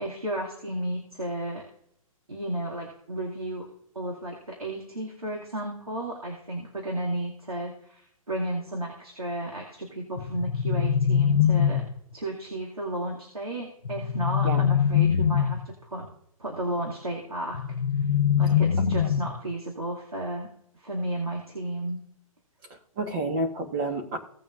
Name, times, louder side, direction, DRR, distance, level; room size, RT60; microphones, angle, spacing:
voice 1, 0.0-1.6 2.3-3.7 3.9-11.8 12.1-16.1 16.4-17.6 18.4-20.5 20.7-22.0, right 1 dB, 90° right, -2 dB, 2.5 m, -33 dB
sound 1, 10.2-12.2 13.8-15.7 17.5-19.5, left 8 dB, 70° left, 0.9 m, -23 dB
voice 2, 22.7-24.2, right 2 dB, 35° right, 3 dB, 1.5 m, -30 dB
17.5 x 7.1 x 2.6 m, 0.70 s
figure-of-eight pair, 130°, 18 cm